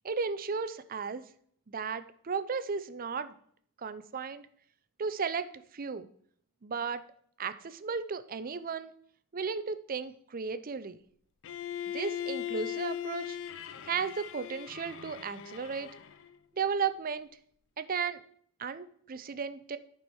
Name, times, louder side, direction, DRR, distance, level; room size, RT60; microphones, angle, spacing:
voice 1, 0.0-1.2 1.7-3.3 3.8-4.5 5.0-6.1 6.6-7.0 7.4-8.9 9.3-11.0 11.9-13.4 13.8-15.9 16.5-17.3 17.8-18.2 18.6-19.8, right 5 dB, 40° right, 13 dB, 0.5 m, -34 dB
Bowed string instrument, 11.4-16.4, left 11 dB, 60° left, 0.5 m, -39 dB
13.5 x 4.5 x 4.7 m, 0.62 s
head